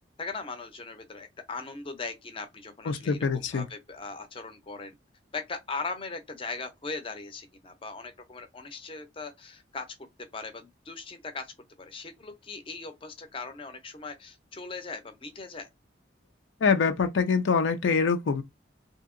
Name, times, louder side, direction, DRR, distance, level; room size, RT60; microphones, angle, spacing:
voice 1, 0.2-4.9 5.3-9.9 10.3-11.5 11.8-15.7, left 4 dB, 30° left, 0.5 m, -39 dB
voice 2, 2.9-3.6 16.6-18.4, left 5 dB, 90° left, 0.4 m, -24 dB
2.7 x 2.7 x 2.5 m
head